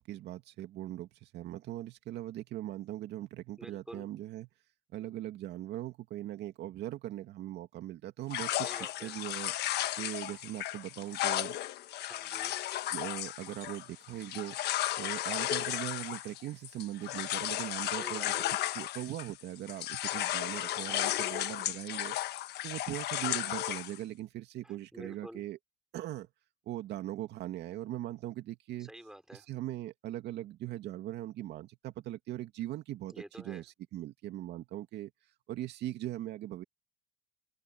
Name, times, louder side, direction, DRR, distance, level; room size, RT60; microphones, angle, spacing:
voice 1, 0.0-4.5 4.9-9.5 10.0-11.6 12.9-14.6 15.0-18.3 18.7-22.2 22.6-25.6 25.9-26.3 26.7-28.9 29.3-35.1 35.5-36.6, right 14 dB, 65° right, 2.4 m, -40 dB
voice 2, 3.6-4.1 8.6-9.2 12.0-12.6 18.0-18.5 20.8-21.3 24.6-25.4 28.8-29.5 33.1-33.6, right 1 dB, 5° right, 5.2 m, -49 dB
sound 1, 8.3-19.4 19.7-24.0, left 14 dB, 65° left, 1.4 m, -34 dB
supercardioid pair, 90°, 19 cm